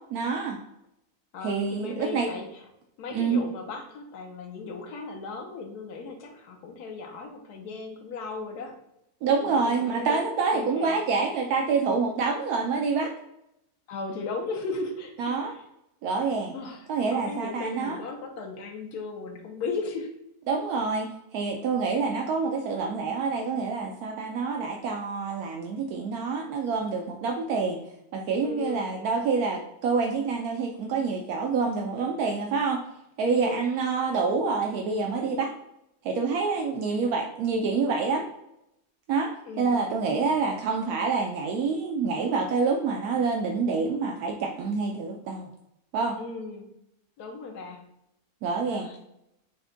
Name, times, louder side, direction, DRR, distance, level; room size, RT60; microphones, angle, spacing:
voice 1, 0.1-0.6 1.4-2.3 3.1-3.4 9.2-13.1 15.2-15.5 16.0-16.6 16.9-18.0 20.5-27.8 28.1-32.8 33.2-35.5 36.0-38.3 39.1-39.3 39.6-45.5 45.9-46.2 48.4-48.9, right 4 dB, 80° right, 1 dB, 1.1 m, -27 dB
voice 2, 1.3-2.6 3.0-8.8 9.4-11.0 13.9-15.3 16.5-20.1 28.4-28.9 33.3-33.7 39.5-39.9 46.2-46.7 47.2-47.8 48.7-49.0, left 4 dB, 85° left, 3 dB, 1.3 m, -36 dB
6.0 x 2.2 x 3.7 m, 0.83 s
omnidirectional pair, 1.6 m